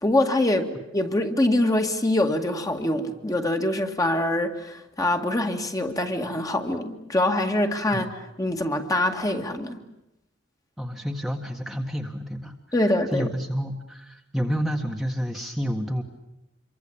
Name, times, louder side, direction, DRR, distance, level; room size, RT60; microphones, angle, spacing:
voice 1, 0.0-8.1 8.4-9.8 12.7-13.3, left 1 dB, 20° left, 2.1 m, -24 dB
voice 2, 10.8-12.5 13.1-16.0, equal, ahead, 1.7 m, -29 dB
27.0 x 24.0 x 8.8 m
head